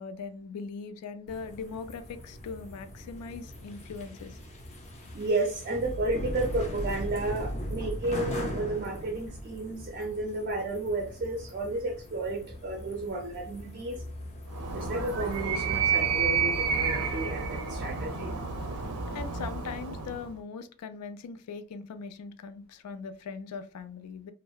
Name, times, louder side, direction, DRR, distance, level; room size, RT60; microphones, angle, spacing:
voice 1, 0.0-4.4 18.7-18.9 19.1-24.3, left 5 dB, 90° left, 11 dB, 0.3 m, -40 dB
sound 1, 1.3-15.4, equal, 30° left, 0.5 m, -39 dB
voice 2, 5.1-14.0 14.7-18.4, right 2 dB, 40° right, 3 dB, 0.4 m, -32 dB
Animal, 14.5-20.3, right 6 dB, 90° right, 0.6 m, -30 dB
2.7 x 2.0 x 2.2 m, 0.40 s
head